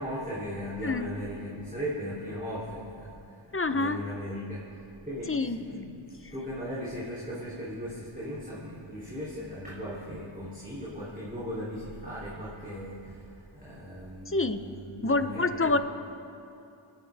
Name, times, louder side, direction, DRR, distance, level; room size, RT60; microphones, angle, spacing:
voice 1, 0.0-6.0 6.3-15.8, equal, 15° right, -10 dB, 3.2 m, -38 dB
voice 2, 3.5-4.0 5.3-5.6 14.3-14.6 15.0-15.8, left 3 dB, 25° left, 10 dB, 0.7 m, -26 dB
30.0 x 11.0 x 3.5 m, 2.7 s
wide cardioid pair, 45°, 49 cm